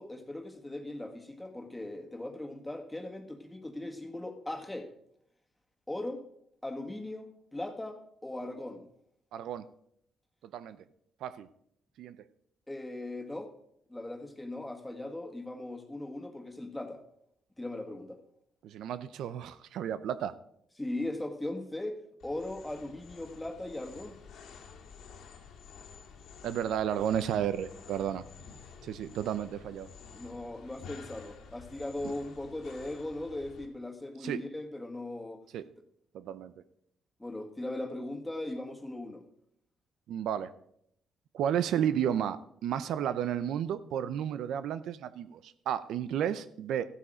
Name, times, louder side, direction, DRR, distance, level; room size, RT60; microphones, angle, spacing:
voice 1, 0.0-4.9 5.9-6.2 6.6-8.9 12.7-13.5 13.9-17.0 17.6-18.2 20.8-24.2 30.1-35.4 37.2-39.2, left 1 dB, 10° left, 3 dB, 1.9 m, -39 dB
voice 2, 9.3-9.6 10.5-10.8 11.2-11.5 12.0-12.2 18.6-20.4 26.4-28.2 28.8-29.9 34.2-34.4 35.5-35.6 36.1-36.5 40.1-40.5 41.3-46.8, right 9 dB, 80° right, 13 dB, 0.6 m, -32 dB
sound 1, 22.2-33.6, left 6 dB, 75° left, 2.3 m, -51 dB
14.0 x 8.4 x 5.0 m, 0.71 s
cardioid pair, 90°, 0 cm